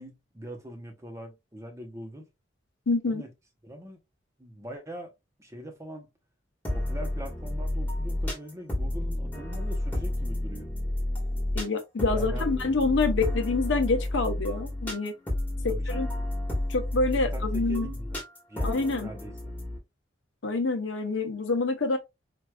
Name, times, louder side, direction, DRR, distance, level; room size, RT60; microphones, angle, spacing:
voice 1, 0.0-2.2 3.1-3.3 3.6-4.0 4.4-5.1 5.4-6.1 6.7-10.7 12.1-12.5 15.7-16.1 17.1-18.2 18.5-19.6, equal, 15° right, 0.7 m, -42 dB
voice 2, 2.9-3.2 11.5-15.1 15.6-16.1 16.7-17.9 18.6-19.1 20.4-22.0, left 3 dB, 80° left, 0.7 m, -27 dB
sound 1, 6.6-19.8, left 1 dB, 10° left, 1.2 m, -31 dB
4.5 x 2.4 x 2.2 m
head